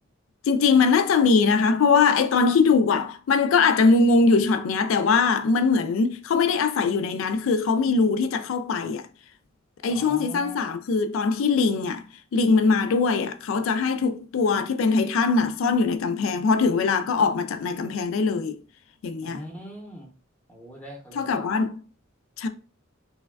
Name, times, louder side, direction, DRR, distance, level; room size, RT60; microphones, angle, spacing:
voice 1, 0.5-9.1 9.8-12.0 12.3-18.6 19.0-19.4 21.2-21.7 22.4-22.5, left 4 dB, 70° left, 0.3 m, -21 dB
voice 2, 9.9-10.8 19.2-20.1 20.5-21.4, equal, 5° left, 0.7 m, -41 dB
3.2 x 2.2 x 2.2 m
head